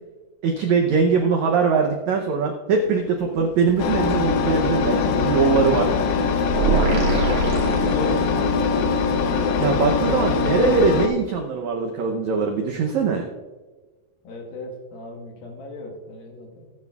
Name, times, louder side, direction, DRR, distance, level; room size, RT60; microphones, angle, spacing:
voice 1, 0.4-5.9 8.1-8.2 9.6-13.3, right 5 dB, 85° right, 2 dB, 1.6 m, -21 dB
sound 1, 2.8-9.4, left 1 dB, 55° left, 1.9 m, -40 dB
Engine, 3.8-11.1, left 5 dB, 90° left, 1.7 m, -22 dB
sound 2, 6.5-8.6, right 5 dB, 55° right, 2.7 m, -24 dB
voice 2, 6.7-8.3 14.2-16.7, left 3 dB, 75° left, 1 dB, 3.1 m, -34 dB
17.5 x 9.3 x 2.3 m, 1.3 s
omnidirectional pair, 4.3 m